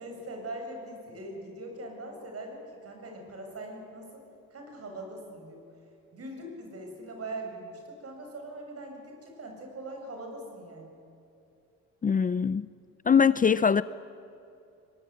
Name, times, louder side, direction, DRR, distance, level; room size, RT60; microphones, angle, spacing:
voice 1, 0.0-4.2 4.5-5.6 6.1-10.9, right 1 dB, 50° right, 3 dB, 7.7 m, -41 dB
voice 2, 12.0-12.7 13.1-13.8, left 6 dB, 30° left, 16 dB, 0.5 m, -22 dB
22.0 x 21.5 x 9.8 m, 2.7 s
cardioid pair, 90°, 30 cm